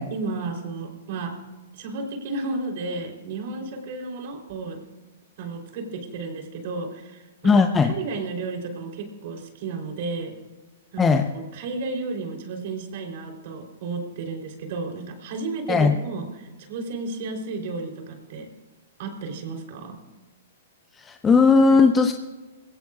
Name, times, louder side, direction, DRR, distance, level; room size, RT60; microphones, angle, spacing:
voice 1, 0.1-1.3 1.7-4.8 5.4-7.5 7.8-10.3 10.9-18.5 19.0-20.0, right 3 dB, 55° right, 2 dB, 3.5 m, -33 dB
voice 2, 7.4-8.0 11.0-11.3 15.7-16.0 20.9-22.1, left 4 dB, 15° left, 6 dB, 0.8 m, -17 dB
21.0 x 17.0 x 2.4 m, 1.2 s
hypercardioid pair, 120°, 0 cm